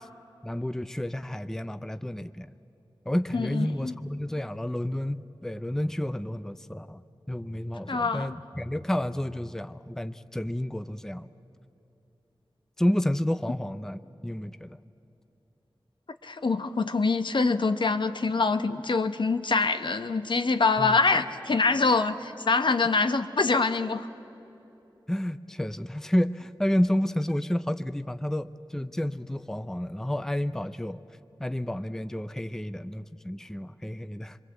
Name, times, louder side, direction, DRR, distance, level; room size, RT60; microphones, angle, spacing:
voice 1, 0.4-2.5 3.1-11.3 12.8-14.8 20.8-21.0 25.1-31.0 31.4-34.4, left 1 dB, 5° left, 12 dB, 0.5 m, -30 dB
voice 2, 3.3-3.9 7.9-8.3 16.2-24.1, left 4 dB, 65° left, 9 dB, 1.0 m, -25 dB
26.0 x 22.5 x 8.0 m, 2.9 s
wide cardioid pair, 65°, 9 cm